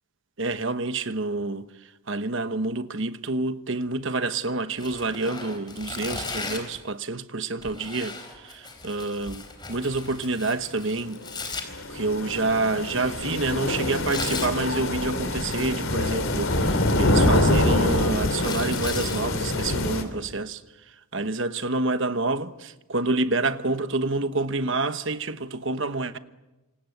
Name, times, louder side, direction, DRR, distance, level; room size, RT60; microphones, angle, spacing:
voice 1, 0.4-11.5 11.9-26.2, right 3 dB, 60° right, 1.2 m, -28 dB
Tearing, 4.7-6.8 7.6-11.6 13.8-14.5 15.8-16.3 16.7-19.2, left 4 dB, 20° left, 4.1 m, -37 dB
sound 1, 11.1-20.0, left 1 dB, 70° left, 3.4 m, -25 dB
27.0 x 25.5 x 8.1 m
head